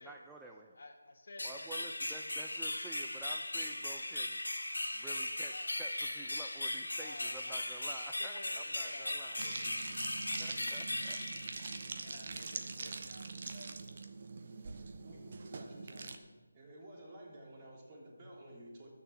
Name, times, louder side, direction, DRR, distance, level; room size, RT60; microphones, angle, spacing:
voice 1, 0.0-0.8 1.4-4.4 4.9-9.4 10.4-11.2, right 3 dB, 5° right, 1 dB, 0.5 m, -51 dB
voice 2, 0.8-2.0 5.5-5.7 7.0-7.6 8.2-9.7 12.0-14.0, left 2 dB, 55° left, 3 dB, 2.0 m, -53 dB
sound 1, 1.4-12.1, left 1 dB, 90° left, 2.0 m, -38 dB
sound 2, 9.4-16.2, right 4 dB, 40° right, 1.1 m, -44 dB
voice 3, 15.0-16.3 16.5-18.9, right 1 dB, 25° right, -3 dB, 3.5 m, -52 dB
12.5 x 6.9 x 7.3 m, 1.2 s
figure-of-eight pair, 165°, 0 cm